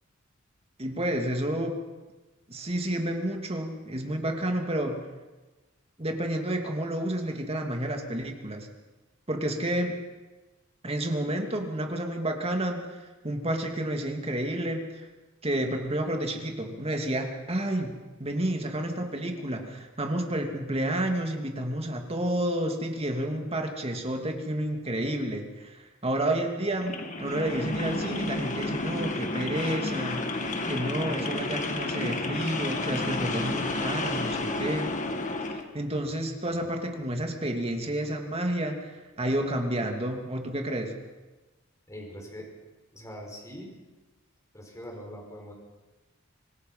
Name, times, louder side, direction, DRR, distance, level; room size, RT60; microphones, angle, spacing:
voice 1, 0.8-1.8 2.5-5.0 6.0-8.7 9.3-10.0 10.8-15.0 15.4-17.9 18.2-35.0 35.5-40.9, right 1 dB, 30° right, 3 dB, 2.8 m, -30 dB
sound 1, 26.8-35.6, left 2 dB, 35° left, 2.1 m, -31 dB
voice 2, 41.9-42.5 42.9-43.7 44.5-45.5, equal, 15° left, 0 dB, 5.4 m, -42 dB
26.5 x 19.0 x 5.8 m, 1.2 s
head